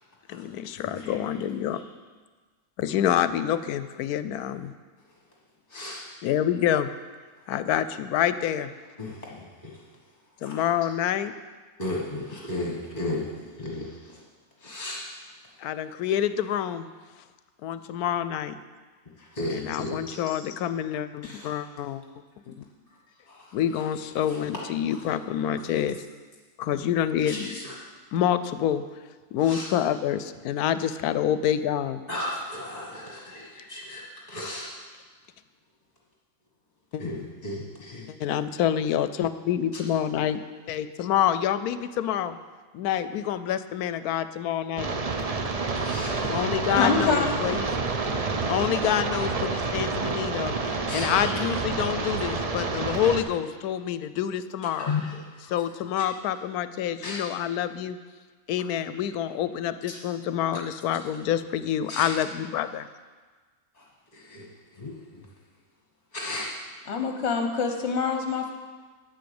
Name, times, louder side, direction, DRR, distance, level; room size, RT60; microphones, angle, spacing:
voice 1, 0.3-1.8 2.8-4.7 6.2-6.9 7.5-8.7 10.4-11.3 15.6-16.9 17.6-18.6 19.5-22.0 22.5-22.6 23.5-26.0 26.6-27.6 28.1-28.8 29.3-32.0 36.9-37.0 38.2-40.4 40.7-42.4 42.7-44.9 46.1-47.7 48.5-54.9 55.5-58.0 58.5-62.9, left 10 dB, 80° left, 13 dB, 1.1 m, -27 dB
voice 2, 5.7-6.0 9.0-9.7 10.4-10.5 11.8-13.3 13.6-13.9 14.6-15.1 19.3-20.4 21.2-21.5 24.3-24.4 27.3-27.8 29.5-29.7 32.1-34.7 37.0-38.1 45.8-46.2 50.9-51.3 54.8-55.1 57.0-57.2 61.9-62.1 64.1-64.5 64.8-64.9 66.1-66.6, left 2 dB, 25° left, -3 dB, 1.5 m, -34 dB
sound 1, 44.8-53.2, right 3 dB, 40° right, 0.5 m, -28 dB
voice 3, 46.8-47.3 66.9-68.5, left 4 dB, 50° left, 3 dB, 1.1 m, -25 dB
9.1 x 7.8 x 7.0 m, 1.4 s
omnidirectional pair, 1.6 m